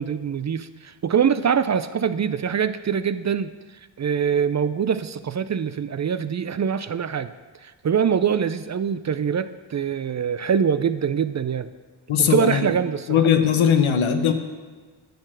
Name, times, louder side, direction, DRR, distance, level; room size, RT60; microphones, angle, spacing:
voice 1, 0.0-3.5 4.0-7.3 7.6-11.7 12.2-13.2, right 7 dB, 35° right, 13 dB, 0.4 m, -24 dB
voice 2, 12.1-12.7 13.1-14.3, left 8 dB, 80° left, 7 dB, 0.9 m, -19 dB
9.3 x 4.7 x 7.5 m, 1.4 s
supercardioid pair, 40°, 48 cm